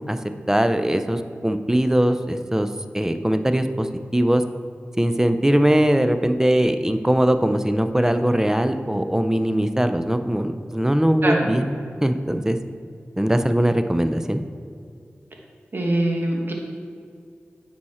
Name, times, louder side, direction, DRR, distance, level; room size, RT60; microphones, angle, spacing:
voice 1, 0.5-2.7 2.9-4.4 5.0-11.7 12.0-12.6 13.2-14.4, right 1 dB, 10° right, 9 dB, 0.5 m, -20 dB
voice 2, 15.7-16.5, right 1 dB, 50° right, 0 dB, 1.4 m, -22 dB
9.4 x 4.3 x 4.3 m, 2.3 s
cardioid pair, 45°, 5 cm